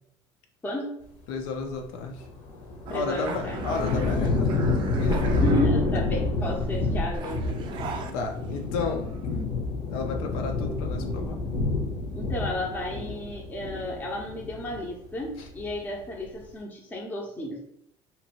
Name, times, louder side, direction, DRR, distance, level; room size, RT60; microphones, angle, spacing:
voice 1, 0.6-1.0 2.9-3.6 5.4-7.6 12.1-17.6, left 1 dB, 15° left, -2 dB, 0.6 m, -32 dB
voice 2, 1.3-2.3 2.9-4.6 5.0-5.4 8.1-11.4 15.4-15.5, left 4 dB, 90° left, 3 dB, 0.5 m, -33 dB
sound 1, 2.2-14.9 15.3-15.9, left 3 dB, 70° left, 0.9 m, -28 dB
sound 2, 2.9-6.1 6.4-8.8 9.0-9.4, right 6 dB, 45° right, 0.4 m, -40 dB
2.9 x 2.5 x 2.8 m, 0.73 s
cardioid pair, 135°, 11 cm